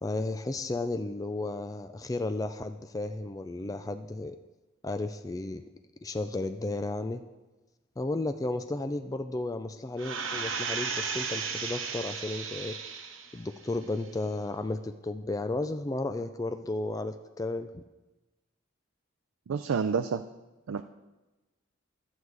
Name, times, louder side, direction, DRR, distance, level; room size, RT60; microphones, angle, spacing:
voice 1, 0.0-4.4 4.8-5.6 6.0-7.2 8.0-12.7 13.3-17.8, left 2 dB, 15° left, 9 dB, 0.3 m, -33 dB
sound 1, 10.0-13.4 13.8-13.9, right 5 dB, 70° right, 1.0 m, -34 dB
voice 2, 19.5-20.2 20.7-20.8, right 6 dB, 85° right, 8 dB, 0.4 m, -28 dB
12.0 x 8.0 x 4.8 m, 1.1 s
head